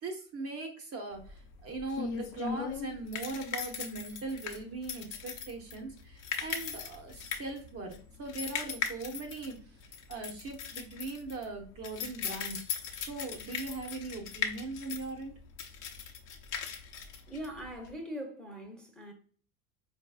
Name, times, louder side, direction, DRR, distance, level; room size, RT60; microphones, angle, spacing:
voice 1, 0.0-9.8 10.1-12.6 13.1-15.3, right 3 dB, 35° right, 0.8 m, -40 dB
sound 1, 1.2-17.9, left 7 dB, 45° left, 0.8 m, -39 dB
voice 2, 17.3-19.1, equal, ahead, 0.8 m, -41 dB
4.5 x 2.7 x 2.3 m
hypercardioid pair, 75°, 44 cm